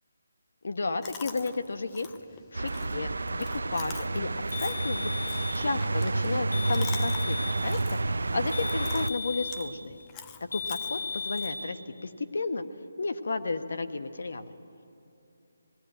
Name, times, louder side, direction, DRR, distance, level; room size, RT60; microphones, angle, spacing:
voice 1, 0.6-2.1 2.5-3.5 3.7-5.1 5.5-10.0 10.5-12.6 13.0-14.5, left 3 dB, 60° left, 9 dB, 1.1 m, -33 dB
Chewing mastication, 1.0-11.5, left 7 dB, 15° left, 0.5 m, -47 dB
sound 1, 2.5-9.1, right 2 dB, 90° right, 0.6 m, -30 dB
sound 2, 4.5-5.6 6.5-7.6 8.5-9.7 10.5-11.6, left 5 dB, 90° left, 3.7 m, -36 dB
19.5 x 15.0 x 9.0 m, 2.9 s
hypercardioid pair, 175°, 0 cm